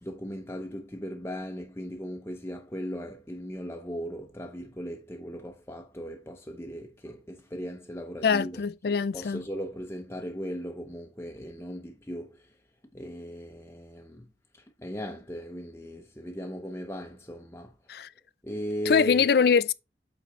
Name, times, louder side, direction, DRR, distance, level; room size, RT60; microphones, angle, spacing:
voice 1, 0.0-8.6 9.1-12.4 12.9-14.3 14.8-17.7 18.4-19.2, equal, 15° left, 0.7 m, -37 dB
voice 2, 8.2-9.4 17.9-18.1 18.9-19.7, left 6 dB, 60° left, 0.4 m, -23 dB
8.4 x 3.8 x 4.2 m
head